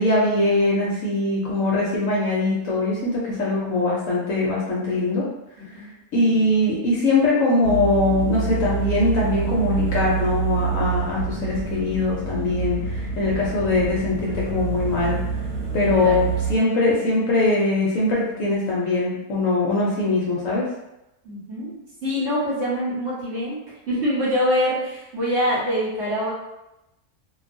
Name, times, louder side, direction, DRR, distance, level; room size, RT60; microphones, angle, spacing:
voice 1, 0.0-5.2 6.1-12.8 13.2-15.2 15.7-16.2 16.5-20.7, left 2 dB, 65° left, -5 dB, 0.9 m, -21 dB
sound 1, 7.6-16.5, right 5 dB, 75° right, 1.2 m, -27 dB
voice 2, 15.9-16.3 21.2-21.7 22.0-23.6 23.9-26.3, equal, 55° right, -8 dB, 1.0 m, -25 dB
2.6 x 2.3 x 2.5 m, 0.92 s
omnidirectional pair, 1.7 m